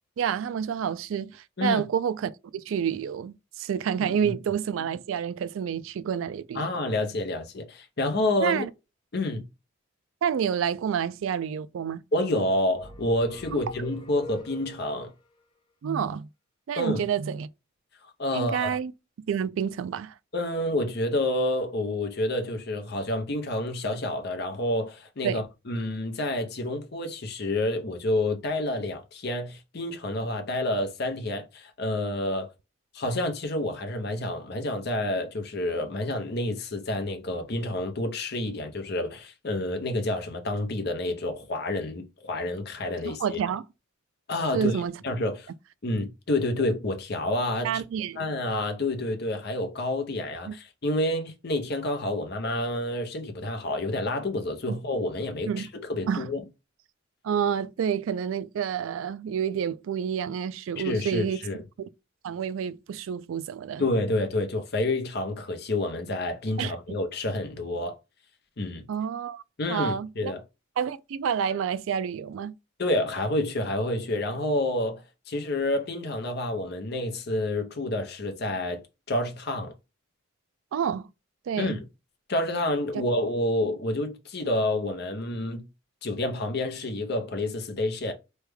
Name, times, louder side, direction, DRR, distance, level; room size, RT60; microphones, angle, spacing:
voice 1, 0.2-6.7 8.4-8.7 10.2-12.0 13.5-13.6 15.8-16.3 16.7-17.5 18.3-18.9 19.3-20.1 25.2-25.4 43.0-43.6 44.5-45.0 47.6-48.3 50.4-50.5 54.7-54.8 55.5-55.7 56.1-56.3 57.2-61.4 62.2-63.8 66.6-66.8 68.9-69.4 69.7-70.3 70.8-72.5 80.7-81.1 81.5-81.8, right 8 dB, 70° right, 0.3 m, -29 dB
voice 2, 6.5-8.6 9.1-9.4 12.1-15.1 16.8-17.0 18.2-18.7 20.3-32.5 32.9-43.4 44.3-45.5 45.8-47.8 48.2-56.4 60.8-61.6 63.8-68.0 68.6-68.8 69.6-70.4 72.8-78.8 79.1-79.7 81.6-81.9 82.3-85.7 86.0-88.1, left 1 dB, 50° left, 0.7 m, -29 dB
sound 1, 12.7-15.1, left 1 dB, 20° left, 0.4 m, -43 dB
3.2 x 2.2 x 3.3 m
head